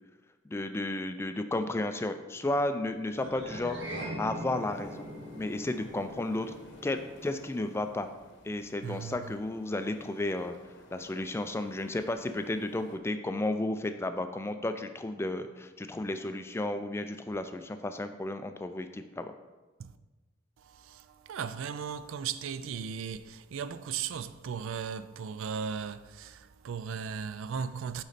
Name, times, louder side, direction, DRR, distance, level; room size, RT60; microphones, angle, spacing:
voice 1, 0.5-3.8 4.2-5.1 5.4-6.5 6.8-8.1 8.4-10.6 10.9-19.3, left 2 dB, 10° left, 0.3 m, -33 dB
sound 1, 3.1-7.7, equal, 60° right, 1.5 m, -42 dB
sound 2, 4.2-13.0, left 2 dB, 60° left, 0.8 m, -56 dB
voice 2, 8.8-9.4 19.8-20.0 20.6-28.0, right 6 dB, 80° right, 0.4 m, -37 dB
8.1 x 4.0 x 4.1 m
head